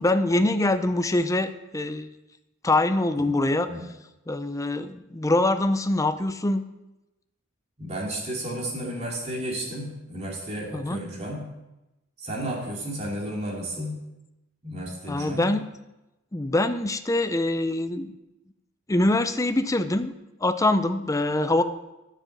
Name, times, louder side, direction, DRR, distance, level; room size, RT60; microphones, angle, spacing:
voice 1, 0.0-2.1 2.6-3.7 4.3-6.6 10.7-11.0 15.1-15.7 16.3-18.1 18.9-20.1 20.4-21.6, left 2 dB, 15° left, 10 dB, 0.5 m, -24 dB
voice 2, 7.8-11.4 12.2-14.0 14.6-15.5, right 1 dB, 30° right, -2 dB, 2.6 m, -32 dB
10.0 x 7.5 x 6.4 m, 0.97 s
head